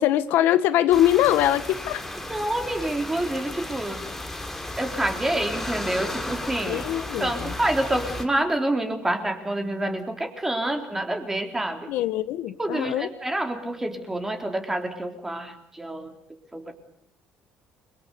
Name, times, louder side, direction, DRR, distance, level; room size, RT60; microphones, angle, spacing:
voice 1, 0.0-2.0 6.7-7.5 11.9-13.1, left 12 dB, 80° left, 12 dB, 1.4 m, -22 dB
sound 1, 0.9-8.3, left 1 dB, 5° left, 3.3 m, -34 dB
voice 2, 2.2-4.1 4.8-6.8 7.2-11.9 12.6-16.1 16.5-16.7, right 1 dB, 10° right, 5 dB, 3.8 m, -28 dB
30.0 x 23.5 x 7.0 m, 0.68 s
cardioid pair, 140°, 3 cm